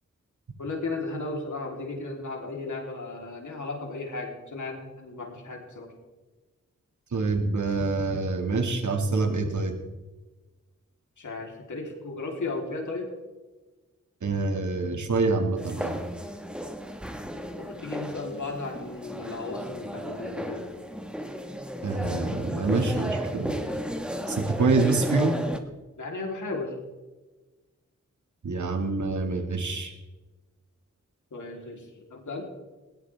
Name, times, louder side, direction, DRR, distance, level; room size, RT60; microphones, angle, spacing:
voice 1, 0.6-5.9 11.2-13.1 17.6-20.6 26.0-26.8 31.3-32.4, left 3 dB, 90° left, 0 dB, 3.6 m, -35 dB
voice 2, 7.1-9.8 14.2-16.0 21.8-23.5 24.3-25.4 28.4-29.9, right 3 dB, 80° right, 4 dB, 2.1 m, -26 dB
sound 1, 15.6-25.6, equal, 5° right, 1.6 m, -34 dB
20.0 x 17.5 x 3.5 m, 1.2 s
wide cardioid pair, 95°, 29 cm